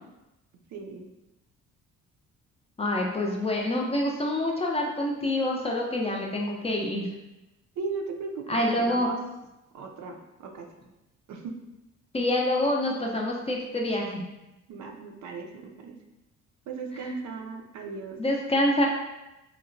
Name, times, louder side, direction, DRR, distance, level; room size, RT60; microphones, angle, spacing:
voice 1, 0.7-1.1 7.8-9.2 9.7-10.7 11.3-11.6 14.7-16.0 16.7-18.2, right 4 dB, 70° right, 2 dB, 0.5 m, -37 dB
voice 2, 2.8-7.1 8.5-9.1 12.1-14.2 18.2-18.9, left 1 dB, 20° left, -1 dB, 0.4 m, -26 dB
2.8 x 2.1 x 2.6 m, 0.97 s
cardioid pair, 90°, 30 cm